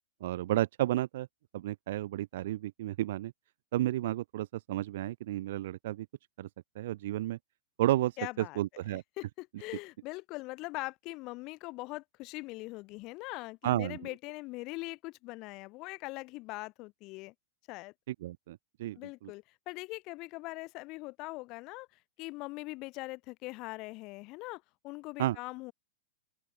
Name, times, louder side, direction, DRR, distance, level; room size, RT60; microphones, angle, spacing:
voice 1, 0.2-1.3 1.5-3.3 3.7-6.1 6.4-6.5 6.7-7.4 7.8-9.0 13.6-14.0 18.1-19.3 25.2-25.4, right 15 dB, 60° right, 0.9 m, -32 dB
voice 2, 8.2-8.6 8.9-17.3 17.7-17.9 19.0-25.7, left 23 dB, 35° left, 0.7 m, -42 dB
open air
supercardioid pair, 155°, 0 cm